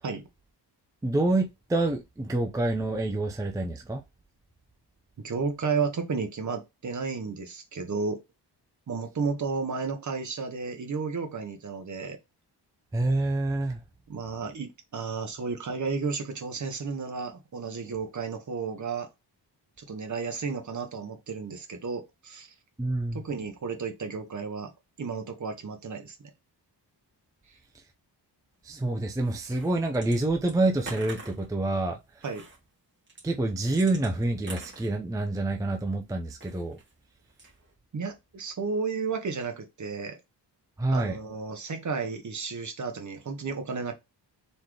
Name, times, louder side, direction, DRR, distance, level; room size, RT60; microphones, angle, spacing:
voice 1, 1.0-4.0 12.9-13.8 22.8-23.2 28.6-32.0 33.2-36.8 40.8-41.2, right 2 dB, 10° right, 0.5 m, -27 dB
voice 2, 5.2-8.2 8.9-12.2 14.1-19.1 19.8-22.5 23.1-24.7 25.0-26.3 32.2-32.5 37.9-40.2 40.9-43.9, right 5 dB, 45° right, 1.1 m, -33 dB
sound 1, 29.2-30.2 30.5-31.5 32.2-32.6 33.1-35.5 36.3-36.9 37.3-37.7, right 3 dB, 25° right, 2.0 m, -44 dB
4.2 x 3.7 x 3.2 m
wide cardioid pair, 180°, 43 cm